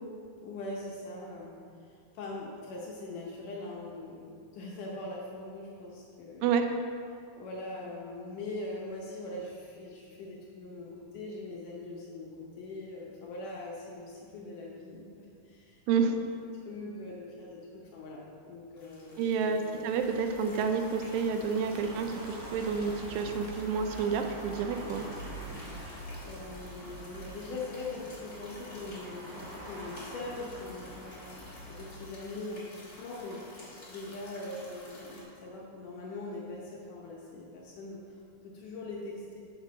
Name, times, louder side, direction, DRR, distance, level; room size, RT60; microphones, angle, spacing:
voice 1, 0.4-6.5 7.3-16.2 16.7-19.8 21.8-21.9 26.2-39.4, left 2 dB, 75° left, -3 dB, 2.0 m, -42 dB
sound 1, 18.8-35.2, left 1 dB, 35° left, 1.6 m, -52 dB
voice 2, 19.2-25.1, right 6 dB, 80° right, 6 dB, 2.1 m, -29 dB
sound 2, 19.9-31.9, right 1 dB, 45° right, 3.0 m, -45 dB
6.7 x 6.0 x 6.2 m, 2.4 s
omnidirectional pair, 4.6 m